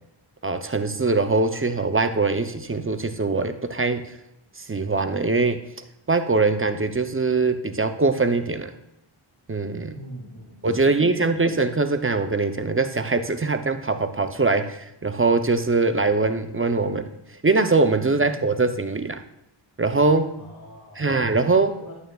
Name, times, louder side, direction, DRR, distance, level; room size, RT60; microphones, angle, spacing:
voice 1, 0.4-4.1 4.6-5.6 6.1-8.7 9.5-10.0 10.6-17.1 17.4-19.2 19.8-20.4 21.0-21.8, right 3 dB, 25° right, 8 dB, 0.5 m, -22 dB
voice 2, 9.9-11.5 18.2-18.4 20.4-21.2 21.8-22.0, equal, 40° left, -6 dB, 2.3 m, -43 dB
11.0 x 9.1 x 2.3 m, 0.80 s
wide cardioid pair, 95°, 50 cm